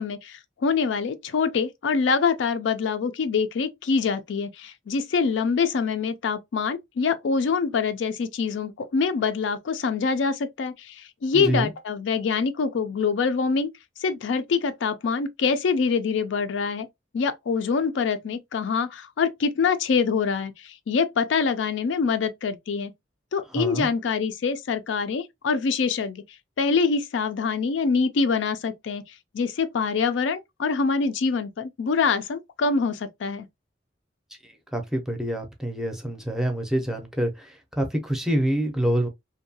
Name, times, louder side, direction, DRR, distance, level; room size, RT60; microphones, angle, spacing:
voice 1, 0.0-13.7 14.0-16.9 17.1-22.9 23.3-26.2 26.6-29.0 29.3-33.5, left 5 dB, 90° left, 0.4 m, -25 dB
voice 2, 11.3-11.7 23.5-23.9 34.4-39.1, right 1 dB, 5° right, 0.5 m, -26 dB
2.6 x 2.2 x 2.6 m
head